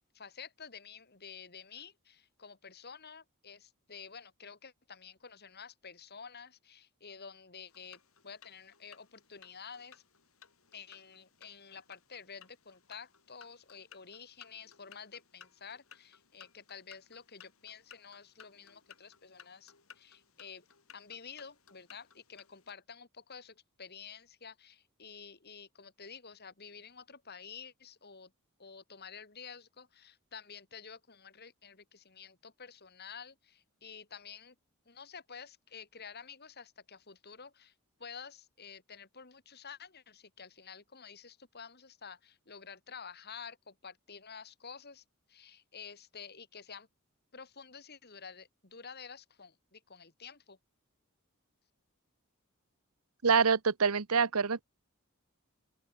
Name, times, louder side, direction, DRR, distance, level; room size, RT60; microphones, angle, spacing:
voice 1, 0.1-8.0 8.2-10.0 10.7-20.7 20.9-28.3 28.6-34.5 34.9-37.7 38.0-46.9 47.3-50.6, left 6 dB, 50° left, 2.9 m, -50 dB
sound 1, 7.7-22.7, left 8 dB, 70° left, 4.6 m, -60 dB
voice 2, 53.2-54.6, right 5 dB, 85° right, 1.0 m, -26 dB
open air
head